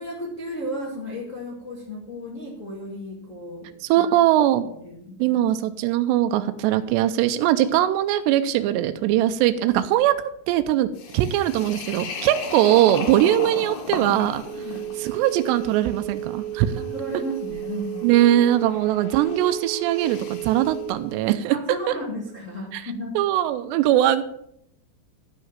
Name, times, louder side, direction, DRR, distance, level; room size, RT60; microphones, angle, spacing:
voice 1, 0.0-3.7 4.0-4.1 4.8-5.4 14.6-14.8 16.7-18.1 21.5-23.2, equal, 85° left, -3 dB, 0.6 m, -34 dB
voice 2, 3.8-4.7 5.2-10.2 10.5-10.9 11.1-14.7 15.0-16.8 18.0-21.6 21.9-22.0 22.7-24.2, right 12 dB, 80° right, 9 dB, 2.7 m, -21 dB
sound 1, 11.0-20.8, left 5 dB, 60° left, 2.3 m, -37 dB
Telephone, 14.4-21.2, right 14 dB, 50° right, 2.8 m, -33 dB
12.0 x 5.5 x 7.3 m, 0.74 s
omnidirectional pair, 5.1 m